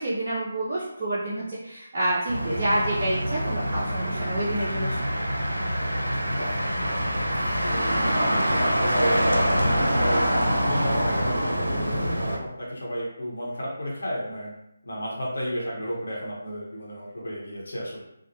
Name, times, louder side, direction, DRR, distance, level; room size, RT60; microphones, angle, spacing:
voice 1, 0.0-5.0, right 1 dB, 30° right, -8 dB, 0.5 m, -28 dB
Motor vehicle (road), 2.3-12.4, equal, 80° right, 0.5 m, -25 dB
voice 2, 7.6-10.3 10.6-14.5 14.8-18.0, equal, 60° left, -4 dB, 0.9 m, -32 dB
3.1 x 2.1 x 2.9 m, 0.81 s
figure-of-eight pair, 150°, 0 cm